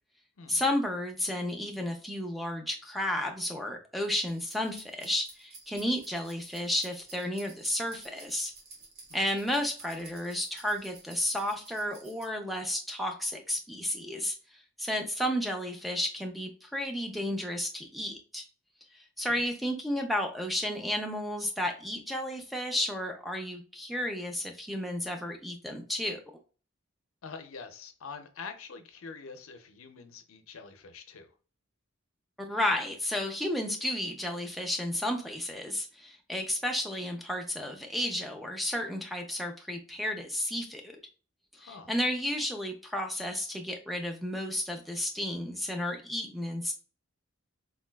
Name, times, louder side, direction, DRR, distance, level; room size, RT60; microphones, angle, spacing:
voice 1, 0.5-8.5 9.1-14.3 14.8-18.4 18.9-26.2 32.4-41.0 41.6-46.7, left 1 dB, ahead, 0.4 m, -32 dB
sound 1, 4.3-12.2, right 3 dB, 50° right, 0.8 m, -52 dB
voice 2, 27.2-31.3 41.5-41.9, left 5 dB, 85° left, 0.5 m, -45 dB
3.8 x 2.3 x 2.2 m
head